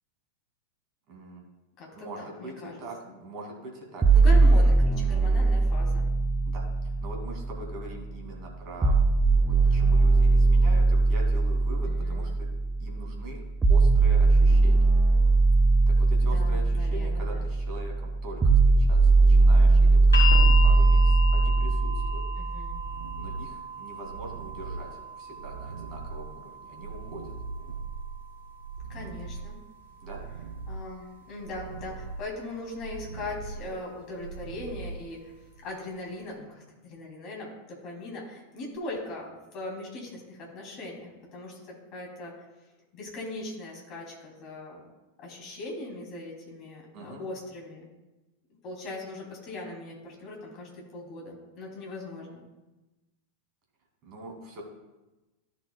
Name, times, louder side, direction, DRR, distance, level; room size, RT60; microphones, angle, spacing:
voice 1, 1.1-1.4 1.9-4.0 6.4-9.0 9.6-12.5 12.8-14.9 15.9-22.2 23.1-27.3 30.0-30.2 46.9-47.2 54.0-54.6, right 1 dB, 40° right, 0 dB, 2.3 m, -43 dB
voice 2, 1.8-3.2 4.1-6.1 11.8-12.4 16.2-17.5 22.4-22.8 28.9-29.6 30.7-35.3 35.6-42.4 42.9-44.8 45.2-47.9 48.6-52.4, left 2 dB, 35° left, -2 dB, 3.0 m, -40 dB
sound 1, 4.0-8.0 8.8-22.8, right 3 dB, 15° right, 0.5 m, -21 dB
sound 2, 20.1-32.2 33.3-33.4, left 3 dB, 70° left, 1.9 m, -37 dB
sound 3, 20.3-35.6 38.7-38.8, right 4 dB, 75° right, 0.5 m, -39 dB
13.5 x 6.6 x 2.3 m, 1.1 s
figure-of-eight pair, 90°, 0 cm